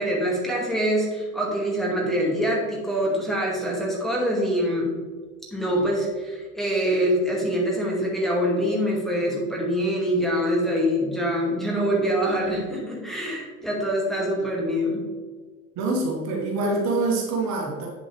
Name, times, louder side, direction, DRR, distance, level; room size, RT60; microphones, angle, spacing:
voice 1, 0.0-5.0 5.5-15.0, equal, ahead, -4 dB, 2.2 m, -24 dB
voice 2, 15.8-17.9, right 2 dB, 40° right, -1 dB, 2.0 m, -25 dB
8.6 x 7.5 x 3.4 m, 1.4 s
figure-of-eight pair, 80°, 41 cm